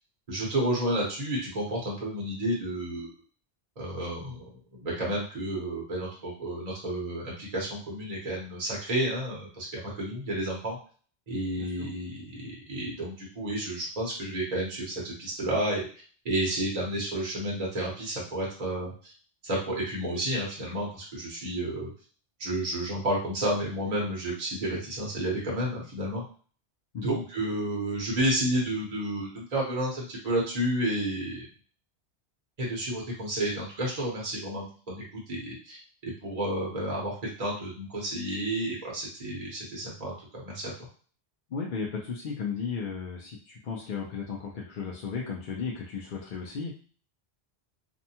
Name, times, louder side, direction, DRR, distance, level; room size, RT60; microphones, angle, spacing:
voice 1, 0.3-3.1 3.8-10.8 11.3-15.9 16.2-19.1 19.4-21.9 22.4-26.2 27.0-31.5 32.6-40.7, right 1 dB, 40° right, -4 dB, 0.8 m, -31 dB
voice 2, 11.6-11.9 26.9-27.1 41.5-46.7, left 5 dB, 60° left, -2 dB, 0.6 m, -35 dB
2.6 x 2.1 x 2.8 m, 0.41 s
omnidirectional pair, 1.1 m